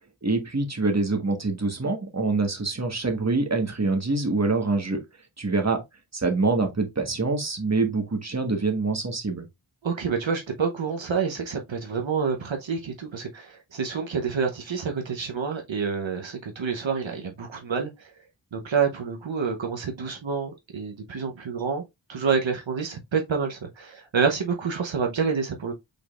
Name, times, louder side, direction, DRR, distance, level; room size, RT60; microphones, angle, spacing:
voice 1, 0.2-5.0 5.4-5.8 6.1-9.4, right 3 dB, 35° right, 1.3 m, -25 dB
voice 2, 9.8-18.1 18.5-21.8 22.1-25.7, right 5 dB, 75° right, 0.9 m, -28 dB
5.1 x 4.0 x 2.4 m
wide cardioid pair, 45°, 46 cm